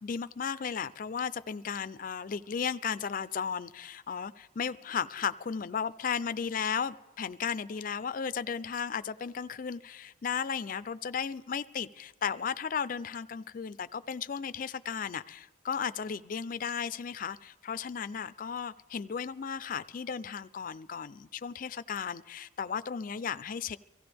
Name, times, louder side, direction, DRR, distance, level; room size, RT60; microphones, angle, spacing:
voice 1, 0.0-23.8, left 7 dB, 45° left, 0.4 m, -35 dB
23.5 x 15.5 x 3.4 m
head